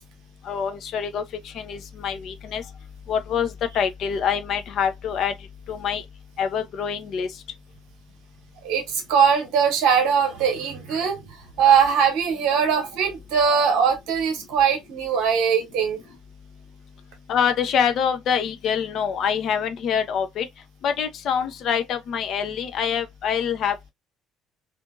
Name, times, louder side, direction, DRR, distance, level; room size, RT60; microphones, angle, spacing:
voice 1, 0.4-2.6 3.1-5.3 5.7-6.0 6.4-7.3 10.9-11.0 17.3-20.5 20.8-23.9, left 7 dB, 55° left, 0.5 m, -25 dB
voice 2, 8.6-11.2 11.6-16.0, right 7 dB, 60° right, 0.9 m, -21 dB
2.6 x 2.5 x 2.3 m
figure-of-eight pair, 50°, 0 cm